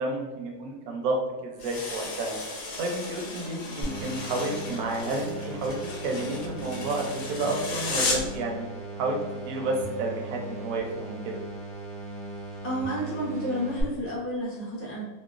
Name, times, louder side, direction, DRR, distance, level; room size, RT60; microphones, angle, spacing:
voice 1, 0.0-8.7 9.0-9.2 9.4-11.4, right 2 dB, 80° right, 1 dB, 1.1 m, -31 dB
sound 1, 1.6-8.4, left 3 dB, 75° left, 0.5 m, -35 dB
sound 2, 3.8-13.8, right 2 dB, 65° right, 0.4 m, -38 dB
voice 2, 12.6-15.0, equal, 20° left, -7 dB, 0.3 m, -31 dB
2.9 x 2.1 x 2.3 m, 1.2 s
omnidirectional pair, 1.6 m